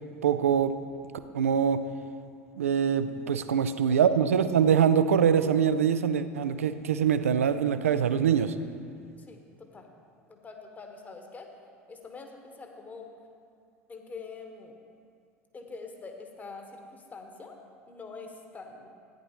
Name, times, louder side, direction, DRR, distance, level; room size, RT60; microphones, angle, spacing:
voice 1, 0.2-0.8 1.3-1.8 2.6-8.6, right 8 dB, 70° right, 11 dB, 0.4 m, -24 dB
voice 2, 9.2-9.9 10.3-11.5 11.9-13.1 13.9-14.8 15.5-17.6 17.9-18.9, left 4 dB, 20° left, 3 dB, 1.2 m, -45 dB
14.0 x 9.8 x 3.0 m, 2.3 s
figure-of-eight pair, 70°, 8 cm